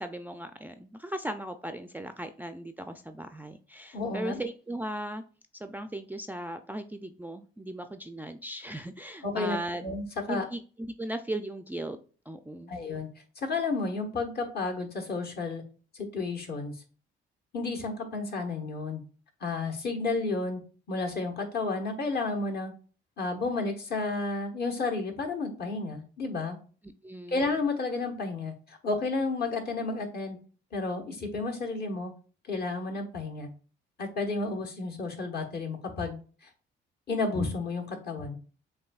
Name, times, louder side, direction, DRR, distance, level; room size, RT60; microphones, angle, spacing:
voice 1, 0.0-5.2 5.5-9.8 10.3-12.0 12.3-12.8 27.0-27.4, right 1 dB, 10° right, 7 dB, 0.3 m, -37 dB
voice 2, 3.9-4.4 9.2-10.5 12.7-13.1 13.4-15.6 16.0-16.7 17.5-19.0 19.4-20.6 20.9-22.7 23.2-26.6 27.3-30.4 30.7-32.1 32.5-33.5 34.0-36.2 37.1-38.3, left 3 dB, 55° left, 2 dB, 1.2 m, -31 dB
7.0 x 2.6 x 2.3 m, 0.38 s
cardioid pair, 90°, 20 cm